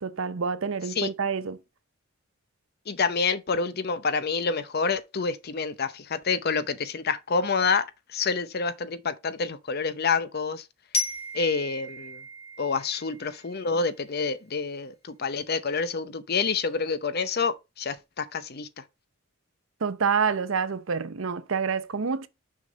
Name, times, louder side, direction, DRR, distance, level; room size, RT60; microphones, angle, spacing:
voice 1, 0.0-1.6 19.8-22.3, right 5 dB, 65° right, 0.7 m, -27 dB
voice 2, 2.9-7.9 8.1-10.6 11.3-12.2 12.6-18.8, left 5 dB, 50° left, 0.7 m, -28 dB
Glockenspiel, 10.9-13.8, left 1 dB, 30° left, 2.6 m, -34 dB
6.3 x 5.7 x 4.1 m
head